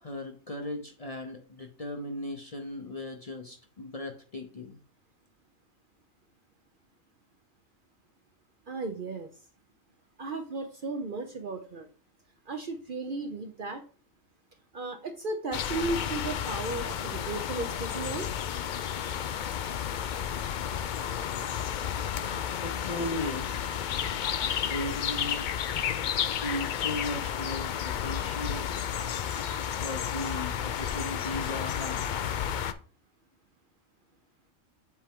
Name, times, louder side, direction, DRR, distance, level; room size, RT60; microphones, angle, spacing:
voice 1, 0.0-4.8 22.6-23.7 24.4-25.5 26.4-28.9 29.8-32.1, left 1 dB, 35° left, 3 dB, 0.7 m, -37 dB
voice 2, 8.7-9.3 10.2-11.9 12.5-13.8 14.7-18.3, right 3 dB, 50° right, 6 dB, 0.7 m, -35 dB
sound 1, 15.5-32.7, left 9 dB, 80° left, 0.4 m, -32 dB
7.5 x 4.3 x 3.6 m, 0.39 s
omnidirectional pair, 1.4 m